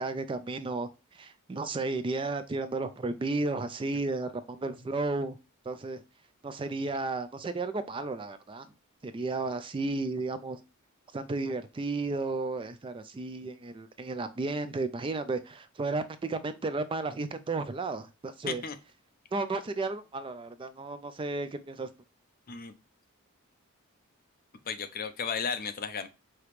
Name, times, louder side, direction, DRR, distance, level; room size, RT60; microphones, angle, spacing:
voice 1, 0.0-5.4 5.7-6.0 6.4-8.7 9.0-10.6 11.1-18.6 19.3-21.9, right 3 dB, 25° right, 11 dB, 0.3 m, -33 dB
voice 2, 24.7-26.1, left 6 dB, 40° left, 9 dB, 0.5 m, -34 dB
4.9 x 2.9 x 3.1 m, 0.28 s
head